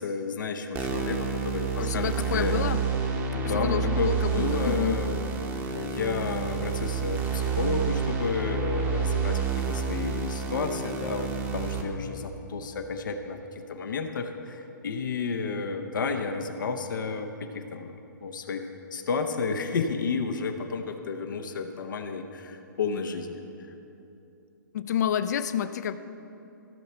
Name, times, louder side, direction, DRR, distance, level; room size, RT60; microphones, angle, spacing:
voice 1, 0.0-2.6 3.3-5.2 5.7-13.4 13.7-23.4, left 4 dB, 75° left, 5 dB, 0.9 m, -31 dB
sound 1, 0.8-11.8, right 5 dB, 20° right, 0.9 m, -29 dB
voice 2, 1.8-2.8 3.5-5.0 24.7-26.0, left 9 dB, 60° left, 13 dB, 0.5 m, -29 dB
15.5 x 5.7 x 4.3 m, 2.8 s
hypercardioid pair, 140°, 11 cm